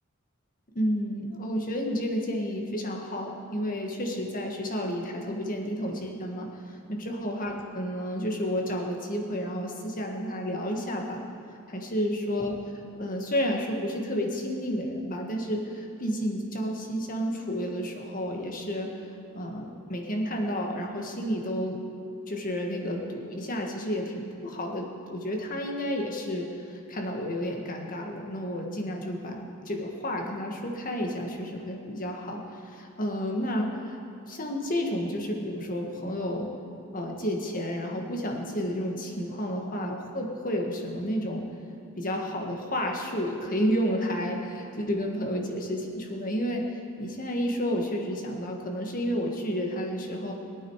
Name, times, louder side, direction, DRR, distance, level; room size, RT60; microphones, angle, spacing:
voice 1, 0.8-11.2 11.7-12.5 13.0-18.9 19.3-21.8 22.3-34.0 34.3-36.5 36.9-41.4 42.0-46.6 47.0-50.3, equal, 40° left, 1 dB, 1.7 m, -31 dB
21.5 x 9.0 x 4.8 m, 2.5 s
head